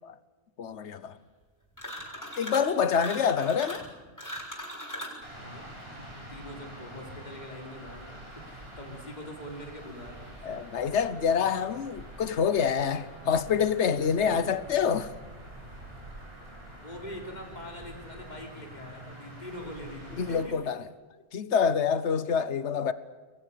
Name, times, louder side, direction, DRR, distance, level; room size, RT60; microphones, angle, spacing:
voice 1, 0.6-1.2 2.4-3.8 10.4-15.1 20.2-20.8 21.3-22.9, left 7 dB, 80° left, 1.3 m, -26 dB
sound 1, 1.7-2.7 3.0-5.2, equal, 15° left, 7.0 m, -39 dB
sound 2, 5.2-20.4, equal, 60° right, 7.5 m, -46 dB
voice 2, 5.4-5.9 6.3-10.3 14.0-14.4 16.8-20.6, equal, 40° left, 4.2 m, -43 dB
29.0 x 22.5 x 6.9 m
omnidirectional pair, 1.2 m